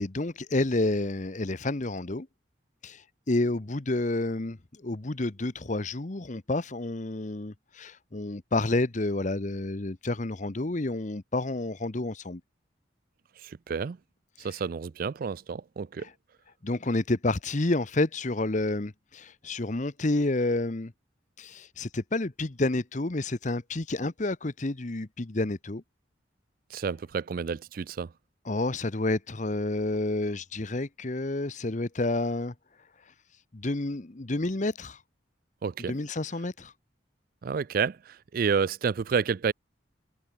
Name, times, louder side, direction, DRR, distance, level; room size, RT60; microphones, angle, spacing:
voice 1, 0.0-2.3 2.8-4.6 4.8-12.4 14.4-14.6 16.0-16.1 16.6-20.9 21.4-25.8 28.4-32.5 33.5-35.0 35.8-36.7, left 2 dB, 40° left, 1.0 m, -29 dB
voice 2, 13.7-14.0 14.4-16.1 26.7-28.1 35.6-36.0 37.4-39.5, right 6 dB, 50° right, 0.4 m, -29 dB
head